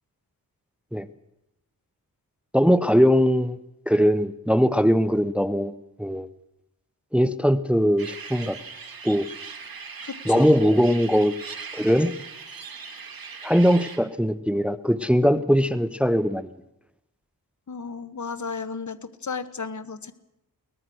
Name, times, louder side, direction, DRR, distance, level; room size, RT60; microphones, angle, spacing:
voice 1, 2.5-3.6 3.9-5.7 6.0-6.3 7.1-8.6 9.0-9.3 10.3-11.3 11.7-12.1 13.4-16.5, equal, 5° right, 14 dB, 0.9 m, -20 dB
sound 1, 8.0-14.0, right 5 dB, 70° right, 2.5 m, -40 dB
voice 2, 10.0-10.6 17.7-20.1, left 5 dB, 55° left, 12 dB, 1.5 m, -34 dB
22.5 x 19.0 x 6.4 m, 0.87 s
cardioid pair, 65°, 36 cm